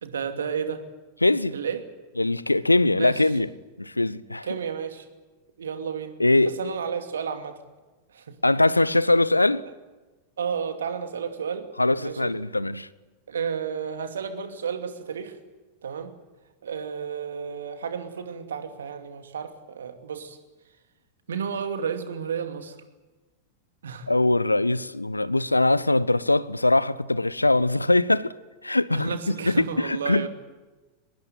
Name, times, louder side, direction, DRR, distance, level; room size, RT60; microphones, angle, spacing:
voice 1, 0.0-0.8 1.5-1.8 3.0-3.2 4.4-5.1 5.6-6.1 6.4-7.6 8.1-8.4 9.6-9.7 10.4-11.7 12.0-12.3 13.3-15.4 15.8-16.1 16.6-20.4 21.3-22.8 23.8-24.1 28.9-30.3, right 7 dB, 65° right, 2.6 m, -32 dB
voice 2, 1.2-1.5 2.2-3.5 3.8-4.5 6.2-6.7 8.4-9.6 11.8-12.9 24.1-28.3 28.6-30.3, left 2 dB, 85° left, 0.8 m, -22 dB
23.5 x 21.0 x 9.4 m
figure-of-eight pair, 90°, 0 cm